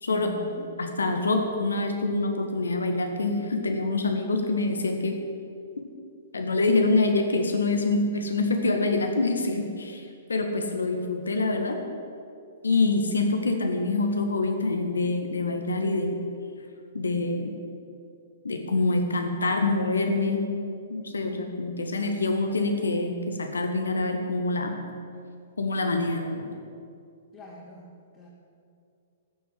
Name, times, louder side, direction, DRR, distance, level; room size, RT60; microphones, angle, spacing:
voice 1, 0.1-0.7 27.3-28.3, left 1 dB, 25° left, -6 dB, 2.7 m, -42 dB
voice 2, 0.8-5.2 6.3-11.8 12.6-16.2 16.9-17.5 18.4-20.5 20.9-24.8 25.6-26.5, left 3 dB, 75° left, 4 dB, 1.7 m, -26 dB
14.0 x 7.7 x 7.8 m, 2.4 s
figure-of-eight pair, 115°, 0 cm